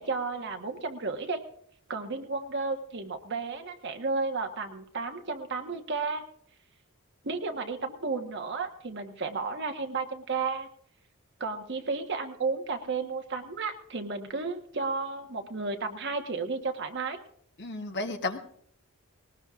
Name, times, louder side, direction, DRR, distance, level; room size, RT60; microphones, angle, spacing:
voice 1, 0.0-1.4 1.9-6.2 7.2-10.7 11.4-17.2, right 4 dB, 50° right, 6 dB, 1.2 m, -33 dB
voice 2, 17.6-18.4, left 2 dB, 50° left, 6 dB, 1.1 m, -33 dB
19.5 x 19.0 x 2.4 m, 0.64 s
head